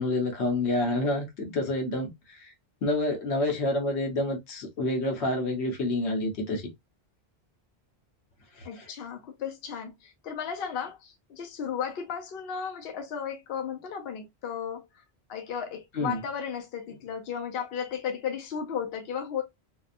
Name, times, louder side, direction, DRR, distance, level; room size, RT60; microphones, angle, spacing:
voice 1, 0.0-2.5 2.8-6.6 8.6-8.8 15.9-16.2, left 2 dB, 85° left, 1.2 m, -28 dB
voice 2, 8.6-14.9 15.3-19.4, left 7 dB, 65° left, 0.8 m, -34 dB
2.8 x 2.3 x 2.4 m
omnidirectional pair, 1.1 m